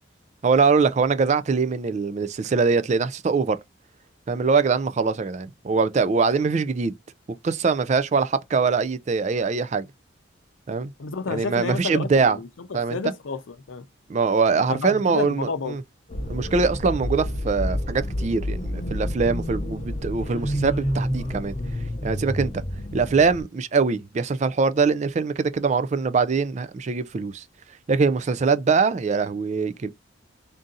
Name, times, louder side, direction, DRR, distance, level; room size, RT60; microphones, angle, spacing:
voice 1, 0.4-3.6 4.3-6.9 7.4-9.9 10.7-10.9 11.3-12.4 12.7-13.1 14.1-15.8 16.3-21.5 22.0-22.6 22.9-27.4 27.9-29.9, right 4 dB, 35° right, 0.3 m, -23 dB
voice 2, 11.0-13.9 14.7-15.8, left 4 dB, 85° left, 0.6 m, -31 dB
sound 1, 16.1-23.4, equal, 35° left, 0.7 m, -29 dB
3.7 x 2.7 x 3.8 m
head